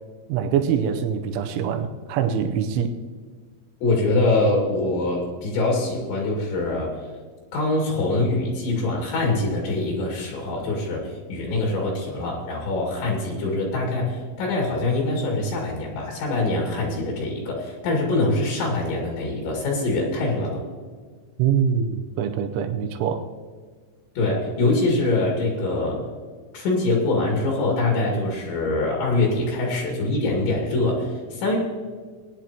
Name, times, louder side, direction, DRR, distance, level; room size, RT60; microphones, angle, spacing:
voice 1, 0.3-2.9 21.4-23.3, right 8 dB, 85° right, 6 dB, 3.2 m, -24 dB
voice 2, 3.8-7.0 7.5-20.6 24.2-26.0 26.5-31.6, left 2 dB, 65° left, -1 dB, 4.3 m, -24 dB
20.0 x 10.0 x 3.0 m, 1.5 s
omnidirectional pair, 5.7 m